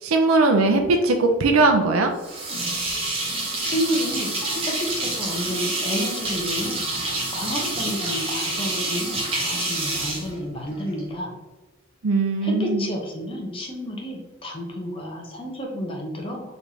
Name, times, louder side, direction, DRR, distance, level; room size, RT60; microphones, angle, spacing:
voice 1, 0.0-2.1 12.0-12.8, right 3 dB, 80° right, 4 dB, 0.5 m, -19 dB
sound 1, 2.2-11.0, right 2 dB, 25° right, 1.0 m, -27 dB
voice 2, 3.6-4.3 4.9-6.8 7.3-11.3 12.4-16.4, equal, 25° left, 0 dB, 0.8 m, -30 dB
4.8 x 3.2 x 2.7 m, 1.2 s
head